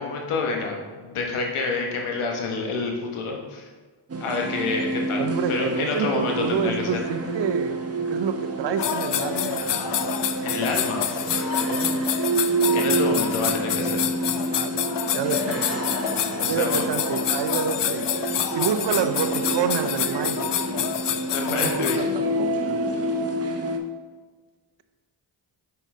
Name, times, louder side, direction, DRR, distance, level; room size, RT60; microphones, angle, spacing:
voice 1, 0.0-3.7 4.2-7.0 10.4-11.6 12.7-14.0 15.5-15.6 16.3-16.8 21.3-22.1, left 3 dB, 80° left, 2 dB, 1.2 m, -28 dB
sound 1, 4.1-23.8, right 2 dB, 30° right, 0.8 m, -28 dB
voice 2, 5.2-7.8 8.1-9.8 11.5-12.0 14.5-14.8 15.1-16.2 16.4-20.5 21.4-22.8, right 7 dB, 60° right, 10 dB, 0.6 m, -29 dB
sound 2, 8.8-22.0, left 10 dB, 55° left, 0.6 m, -28 dB
5.5 x 5.3 x 3.6 m, 1.4 s
supercardioid pair, 45°, 50 cm